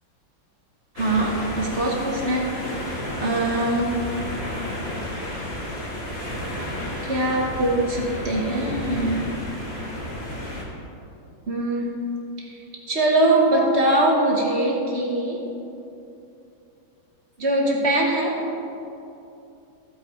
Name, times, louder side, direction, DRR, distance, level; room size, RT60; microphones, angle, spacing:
voice 1, 0.9-2.5 2.9-3.9 7.0-9.3 11.5-12.0 12.4-12.5 12.9-15.4 17.4-18.4, right 1 dB, 35° right, -2 dB, 1.4 m, -22 dB
sound 1, 1.0-10.6, left 1 dB, 35° left, 1.5 m, -32 dB
15.5 x 5.2 x 4.4 m, 2.8 s
omnidirectional pair, 2.2 m